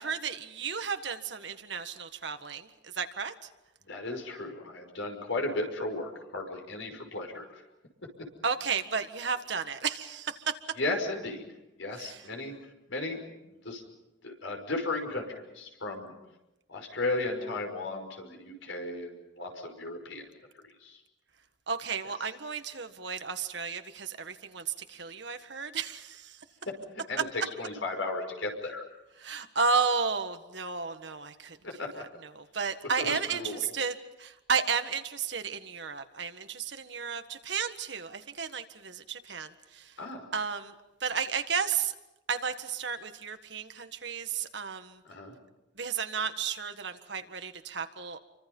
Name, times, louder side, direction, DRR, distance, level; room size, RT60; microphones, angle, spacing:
voice 1, 0.0-3.3 8.4-10.4 12.0-12.2 21.7-26.4 29.2-31.6 32.3-39.9 40.3-40.7 41.0-41.9 42.3-45.0 45.8-48.2, right 5 dB, 65° right, 8 dB, 1.6 m, -33 dB
voice 2, 3.9-7.6 10.8-11.4 11.8-12.5 12.9-13.8 14.2-16.1 16.7-20.3 20.6-21.0 26.6-26.8 27.1-28.8 31.6-32.0 33.0-33.6 40.0-40.3 45.1-45.3, left 2 dB, 80° left, 3 dB, 5.7 m, -35 dB
29.5 x 24.5 x 5.5 m, 0.96 s
head